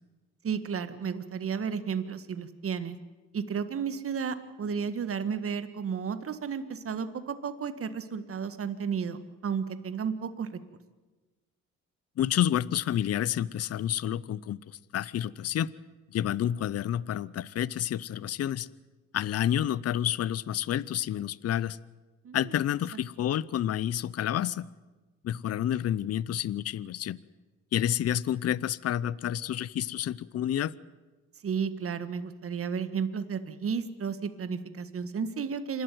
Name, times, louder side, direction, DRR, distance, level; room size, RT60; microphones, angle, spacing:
voice 1, 0.4-3.0 3.3-10.6 22.2-22.6 22.9-23.0 31.4-35.8, right 6 dB, 50° right, 11 dB, 1.7 m, -33 dB
voice 2, 12.2-15.7 16.1-18.7 19.1-21.8 22.3-24.7 25.2-27.2 27.7-30.7, left 11 dB, 55° left, 21 dB, 0.6 m, -29 dB
27.0 x 12.5 x 9.3 m, 1.2 s
cardioid pair, 90°, 30 cm